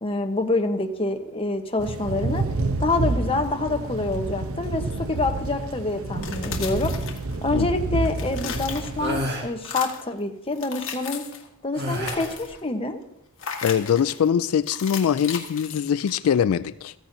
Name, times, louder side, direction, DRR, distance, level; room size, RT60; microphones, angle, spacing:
voice 1, 0.0-2.4 2.8-6.9 7.4-11.3 11.6-13.0, left 2 dB, 25° left, 1.0 m, -26 dB
Thunder / Rain, 1.8-9.2, right 2 dB, 75° right, 0.8 m, -29 dB
sound 1, 6.1-7.6 7.9-9.2 9.6-10.1 10.5-11.5 11.8-12.6 13.4-14.2 14.7-16.4, left 7 dB, 70° left, 1.6 m, -36 dB
sound 2, 9.0-9.5 11.8-12.4, equal, 50° right, 1.7 m, -29 dB
voice 2, 13.6-16.9, left 8 dB, 90° left, 0.3 m, -22 dB
15.0 x 14.0 x 2.7 m
head